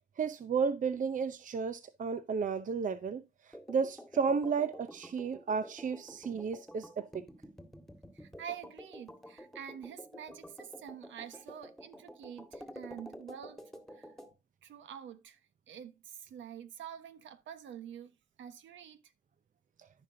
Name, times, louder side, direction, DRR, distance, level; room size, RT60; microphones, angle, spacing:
voice 1, 0.2-3.2 3.7-7.2, right 5 dB, 40° right, 0.7 m, -33 dB
sound 1, 3.5-14.3, equal, ahead, 1.8 m, -50 dB
voice 2, 8.1-13.6 13.9-14.1 14.6-15.4 15.7-18.1 18.4-19.0, right 9 dB, 70° right, 1.3 m, -47 dB
14.5 x 5.2 x 2.7 m
cardioid pair, 90°, 20 cm